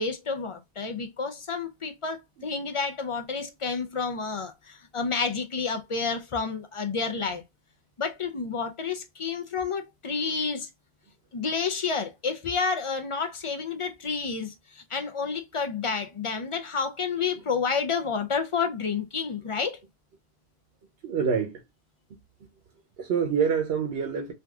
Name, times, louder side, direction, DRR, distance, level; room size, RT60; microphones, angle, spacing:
voice 1, 0.0-7.4 8.0-10.7 11.3-19.8, left 5 dB, 45° left, 0.4 m, -30 dB
voice 2, 21.0-21.6 23.0-24.3, right 6 dB, 80° right, 0.9 m, -26 dB
3.4 x 2.6 x 2.2 m
omnidirectional pair, 1.0 m